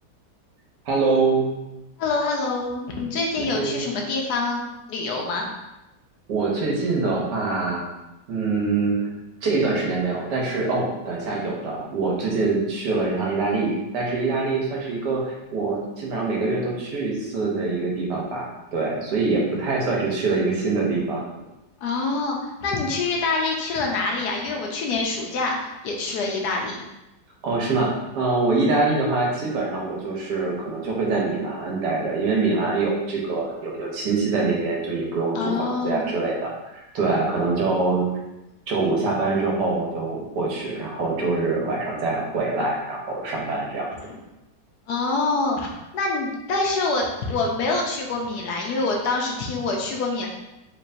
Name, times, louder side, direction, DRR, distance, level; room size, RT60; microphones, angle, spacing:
voice 1, 0.8-1.5 3.4-3.8 6.3-7.8 8.3-9.1 9.4-21.3 27.4-36.5 36.9-38.1 38.7-43.9, right 3 dB, 75° right, -2 dB, 1.5 m, -24 dB
voice 2, 2.0-4.6 4.9-5.5 21.8-26.8 28.5-28.8 35.3-36.1 44.1-44.2 44.9-50.3, left 3 dB, 75° left, 0 dB, 1.1 m, -26 dB
4.5 x 3.2 x 2.6 m, 0.96 s
omnidirectional pair, 1.9 m